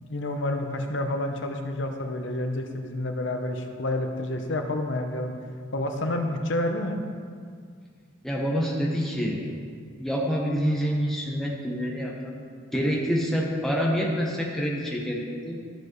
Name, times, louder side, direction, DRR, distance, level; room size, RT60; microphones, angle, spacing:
voice 1, 0.0-5.3 5.7-7.0, left 1 dB, 60° left, 4 dB, 0.7 m, -29 dB
voice 2, 8.2-9.4 10.0-12.4 12.7-15.6, equal, ahead, -3 dB, 1.0 m, -27 dB
13.5 x 5.1 x 3.1 m, 2.1 s
head